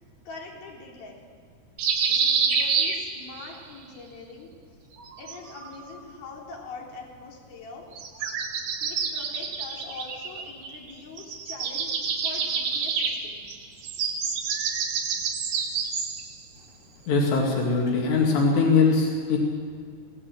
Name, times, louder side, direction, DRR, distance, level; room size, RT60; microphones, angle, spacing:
voice 1, 0.3-1.3 2.0-4.5 5.2-8.1 8.8-13.5, left 3 dB, 65° left, -2 dB, 5.6 m, -43 dB
sound 1, 1.8-3.5 4.9-6.0 7.9-10.9 11.2-16.3, right 6 dB, 80° right, 4.3 m, -28 dB
voice 2, 17.1-19.4, left 4 dB, 90° left, -1 dB, 4.8 m, -21 dB
27.0 x 17.0 x 7.7 m, 2.1 s
omnidirectional pair, 4.8 m